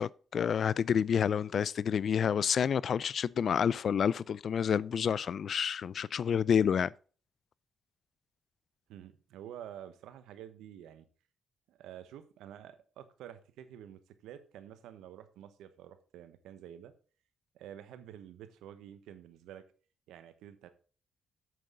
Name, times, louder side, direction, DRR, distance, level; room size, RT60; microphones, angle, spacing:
voice 1, 0.0-6.9, left 7 dB, 60° left, 0.3 m, -29 dB
voice 2, 8.9-11.1 11.7-16.9 17.5-19.6 20.1-20.7, right 10 dB, 90° right, 1.0 m, -49 dB
7.7 x 7.6 x 3.8 m
supercardioid pair, 65°, 0 cm